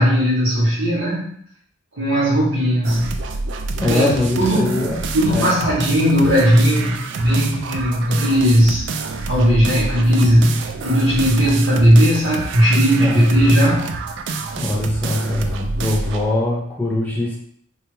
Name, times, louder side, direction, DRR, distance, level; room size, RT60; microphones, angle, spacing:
voice 1, 0.0-1.4 1.9-3.2 3.9-4.1 4.4-4.8 5.1-8.8 9.3-13.9, equal, 90° right, -9 dB, 0.9 m, -16 dB
sound 1, 2.8-16.3, right 4 dB, 65° right, 0.3 m, -28 dB
voice 2, 3.8-5.5 13.0-13.3 14.6-17.4, left 2 dB, 10° left, -3 dB, 0.6 m, -22 dB
3.2 x 2.4 x 3.1 m, 0.64 s
head